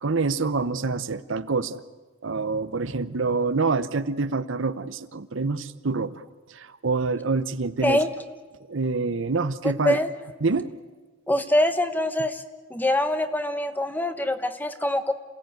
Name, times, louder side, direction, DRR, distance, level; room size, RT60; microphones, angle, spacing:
voice 1, 0.0-1.8 2.2-6.2 6.5-8.0 8.7-10.0 10.4-10.7, right 4 dB, 70° right, 13 dB, 0.9 m, -26 dB
voice 2, 11.3-12.4 12.7-15.1, left 1 dB, 10° left, 9 dB, 1.2 m, -24 dB
28.0 x 17.0 x 9.3 m, 1.3 s
head